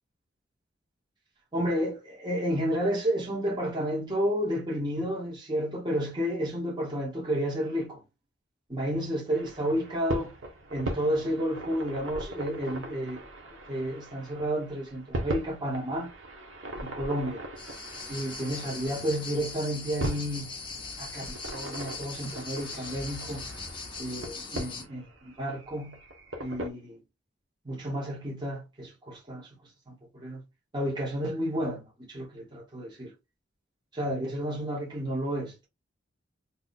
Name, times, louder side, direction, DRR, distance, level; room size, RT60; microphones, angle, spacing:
voice 1, 1.5-8.0 8.7-10.3 10.7-13.2 13.7-16.1 16.8-17.4 18.1-20.5 21.0-23.4 24.0-26.0 26.4-27.0 27.6-29.5 29.9-30.4 30.7-33.1 33.9-35.7, equal, 25° right, 1.1 m, -31 dB
sound 1, 9.3-26.7, right 1 dB, 90° right, 0.9 m, -40 dB
sound 2, 17.6-24.9, left 4 dB, 25° left, 0.6 m, -40 dB
2.8 x 2.3 x 3.9 m
head